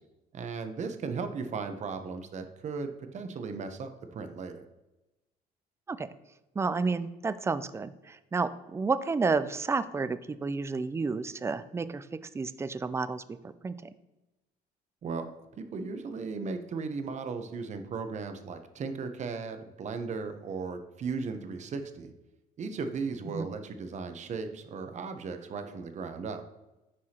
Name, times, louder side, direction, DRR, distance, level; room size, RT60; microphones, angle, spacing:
voice 1, 0.3-4.6 15.0-15.3 15.6-22.1 22.6-26.4, right 4 dB, 45° right, 8 dB, 0.8 m, -36 dB
voice 2, 6.6-12.1 12.3-13.9 23.3-23.5, right 4 dB, 15° right, 14 dB, 0.3 m, -31 dB
9.8 x 4.8 x 2.9 m, 1.0 s
cardioid pair, 110°, 17 cm